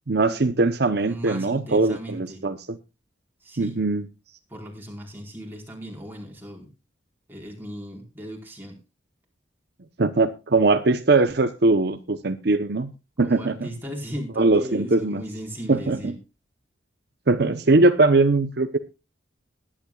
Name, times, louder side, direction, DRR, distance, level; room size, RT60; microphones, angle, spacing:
voice 1, 0.1-2.8 3.6-4.1 10.0-12.9 13.2-13.7 14.3-15.2 15.7-16.2 17.3-18.8, right 3 dB, 60° right, 9 dB, 0.8 m, -21 dB
voice 2, 1.0-2.4 3.4-3.8 4.5-6.7 7.3-8.8 13.2-16.1, equal, 10° right, 0 dB, 4.6 m, -37 dB
20.5 x 11.0 x 2.4 m, 0.28 s
head